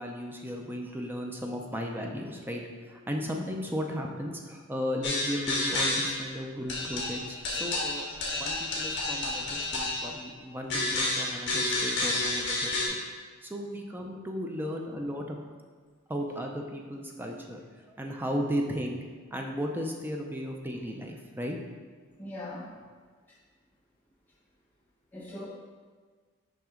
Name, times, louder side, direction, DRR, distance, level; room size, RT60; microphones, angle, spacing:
voice 1, 0.0-8.0 8.3-13.0 13.4-15.4 16.1-19.0 19.3-21.6, equal, 10° right, 1 dB, 0.4 m, -35 dB
sound 1, 5.0-6.3 6.7-10.2 10.7-12.9, left 2 dB, 55° left, 1.4 m, -30 dB
voice 2, 22.2-22.7 25.1-25.5, left 1 dB, 10° left, -7 dB, 1.0 m, -40 dB
5.8 x 5.2 x 3.7 m, 1.5 s
head